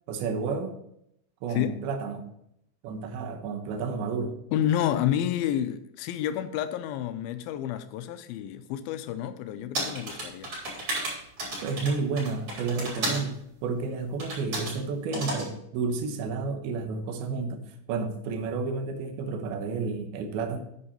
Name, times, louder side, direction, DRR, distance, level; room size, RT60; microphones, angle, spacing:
voice 1, 0.1-0.7 1.4-2.2 2.8-4.4 11.6-20.6, right 4 dB, 75° right, 2.8 m, -31 dB
voice 2, 4.5-10.5, left 11 dB, 85° left, 2.1 m, -29 dB
sound 1, 9.7-13.3 14.2-14.8 15.1-15.5, right 1 dB, 35° right, 4.4 m, -33 dB
9.8 x 5.6 x 5.4 m
omnidirectional pair, 4.8 m